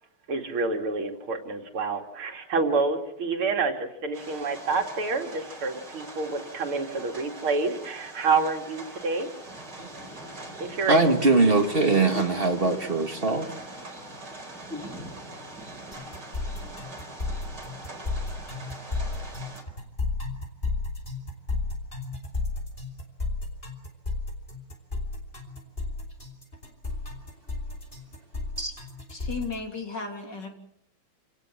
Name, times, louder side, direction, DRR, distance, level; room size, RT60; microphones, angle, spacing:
voice 1, 0.3-9.3 10.6-11.0 11.4-11.5, right 4 dB, 90° right, 3.2 m, -28 dB
sound 1, 4.1-19.6, right 2 dB, 50° right, 4.9 m, -42 dB
voice 2, 10.9-13.5 14.7-14.9 28.6-28.8, right 3 dB, 25° right, 2.1 m, -22 dB
sound 2, 15.9-29.5, left 3 dB, 25° left, 3.8 m, -32 dB
voice 3, 29.1-30.5, left 4 dB, 55° left, 3.9 m, -34 dB
27.5 x 17.5 x 7.4 m
omnidirectional pair, 2.3 m